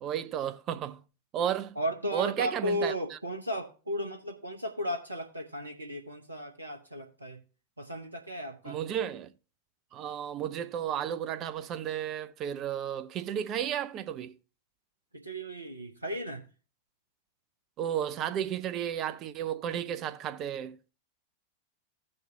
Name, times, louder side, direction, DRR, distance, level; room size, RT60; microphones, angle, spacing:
voice 1, 0.0-1.0 1.3-1.8 2.1-3.2 8.6-9.3 9.9-14.4 17.8-20.8, right 10 dB, 35° right, 0.6 m, -33 dB
voice 2, 1.8-7.4 7.8-8.8 15.1-16.5, equal, 80° right, 0.9 m, -35 dB
16.0 x 5.4 x 2.7 m
figure-of-eight pair, 90°, 0 cm